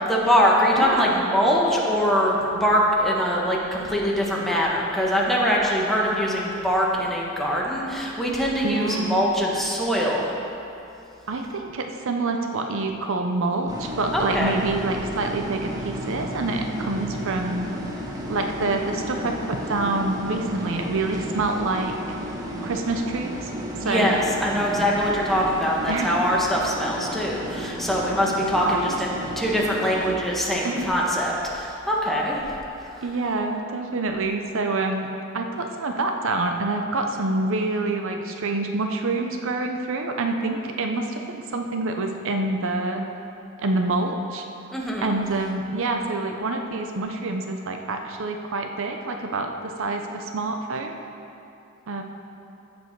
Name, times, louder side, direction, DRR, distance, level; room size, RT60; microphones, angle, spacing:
voice 1, 0.0-10.2 14.1-14.5 23.8-32.4 44.7-45.1, equal, ahead, -4 dB, 1.3 m, -23 dB
voice 2, 0.8-1.1 8.6-9.2 11.3-17.7 18.3-22.0 22.6-23.5 23.8-24.2 24.6-24.7 25.9-26.2 28.6-29.0 30.6-30.9 33.0-35.1 35.3-43.0 43.6-44.4 45.0-51.0 51.9-52.0, right 3 dB, 65° right, 4 dB, 0.7 m, -27 dB
sound 1, 13.7-30.1, equal, 20° right, 1.1 m, -33 dB
15.5 x 5.4 x 4.7 m, 2.7 s
head